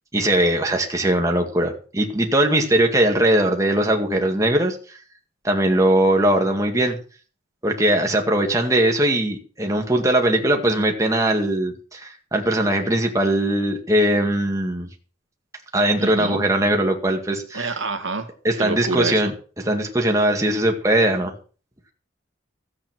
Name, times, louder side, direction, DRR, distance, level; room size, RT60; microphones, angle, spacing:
voice 1, 0.1-5.0 5.4-7.0 7.6-14.9 15.7-17.7 18.4-19.3 19.6-21.3, right 1 dB, 15° right, 2 dB, 2.1 m, -20 dB
voice 2, 16.0-16.4 17.5-18.3 18.5-19.2, right 3 dB, 85° right, 7 dB, 2.0 m, -27 dB
14.0 x 8.6 x 6.1 m, 0.38 s
head